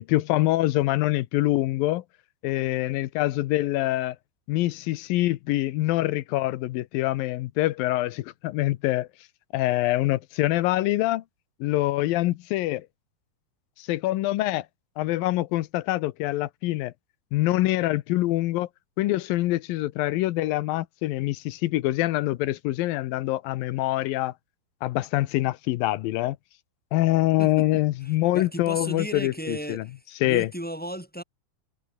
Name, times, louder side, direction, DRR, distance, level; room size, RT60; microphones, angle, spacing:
voice 1, 0.0-2.0 2.4-4.2 4.5-9.1 9.5-11.2 11.6-12.9 13.8-14.6 15.0-16.9 17.3-18.7 19.0-24.3 24.8-26.4 26.9-29.8 30.2-30.5, left 16 dB, 75° left, 2.4 m, -25 dB
voice 2, 27.4-31.2, equal, ahead, 5.0 m, -36 dB
omnidirectional pair, 4.6 m